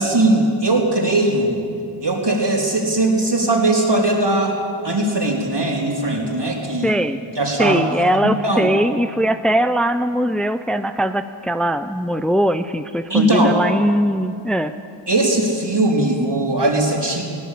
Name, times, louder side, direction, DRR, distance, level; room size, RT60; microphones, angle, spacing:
voice 1, 0.0-1.6 2.0-4.6 4.8-7.0 7.4-7.9 8.4-8.7 13.1-13.6 15.1-17.2, right 2 dB, 55° right, -1 dB, 4.1 m, -19 dB
voice 2, 6.8-7.2 7.6-14.7, equal, ahead, 9 dB, 0.7 m, -20 dB
21.5 x 17.5 x 8.5 m, 2.4 s
wide cardioid pair, 40°, 48 cm